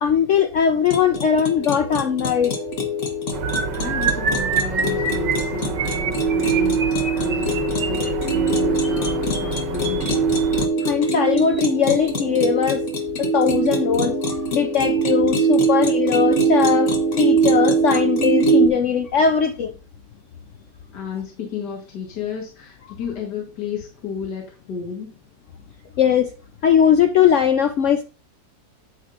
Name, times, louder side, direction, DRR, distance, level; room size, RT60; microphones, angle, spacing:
voice 1, 0.0-2.5 10.8-12.9 13.2-19.7 26.0-26.3 26.6-28.0, left 8 dB, 85° left, 0.6 m, -20 dB
sound 1, 0.9-18.7, right 3 dB, 45° left, 1.6 m, -22 dB
sound 2, 3.3-10.7, right 7 dB, 70° right, 1.4 m, -30 dB
sound 3, 3.4-10.6 11.4-11.6 11.9-12.1 12.4-12.6, right 5 dB, 50° right, 1.5 m, -28 dB
voice 2, 3.8-10.1 15.6-15.7 20.9-25.1, left 5 dB, 65° left, 2.0 m, -32 dB
9.2 x 8.8 x 2.5 m
omnidirectional pair, 2.0 m